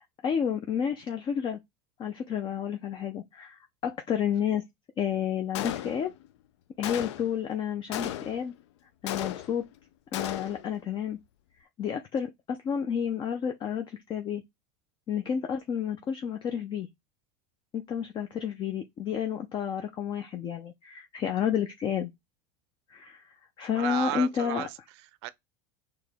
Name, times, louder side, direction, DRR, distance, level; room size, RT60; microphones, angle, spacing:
voice 1, 0.2-1.6 2.0-4.6 5.0-6.1 6.8-8.5 9.0-9.6 10.1-11.2 11.8-14.4 15.1-16.9 17.7-22.1 22.9-23.2 23.6-24.6, left 8 dB, 35° left, 0.5 m, -30 dB
Gunshot gunfire, 5.5-6.3 6.8-7.4 7.9-8.5 9.1-9.7 10.1-10.7, left 12 dB, 90° left, 0.4 m, -35 dB
voice 2, 23.7-25.3, right 16 dB, 75° right, 0.5 m, -34 dB
4.7 x 3.0 x 3.4 m
supercardioid pair, 120°, 14 cm